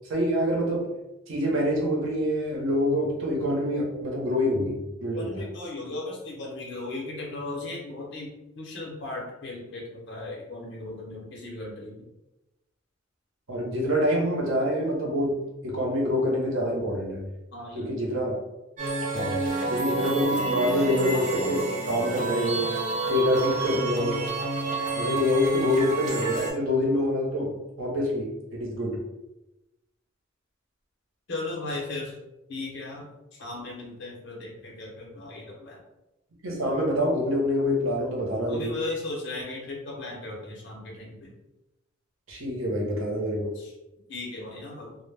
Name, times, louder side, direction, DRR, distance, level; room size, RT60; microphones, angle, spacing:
voice 1, 0.1-0.9 1.3-5.4 13.5-15.3 15.6-17.2 17.7-18.4 19.1-19.4 19.7-22.7 23.1-24.2 25.0-27.5 27.8-29.0 36.4-38.7 42.3-43.5, left 1 dB, 80° right, -2 dB, 0.8 m, -26 dB
voice 2, 5.1-12.1 17.5-17.9 23.3-23.4 31.3-32.2 32.5-33.1 33.4-35.8 38.5-41.3 43.5-43.7 44.1-45.0, left 2 dB, 60° left, -3 dB, 0.8 m, -37 dB
sound 1, 18.8-26.5, right 3 dB, 40° right, 0.6 m, -29 dB
2.1 x 2.1 x 3.2 m, 0.98 s
head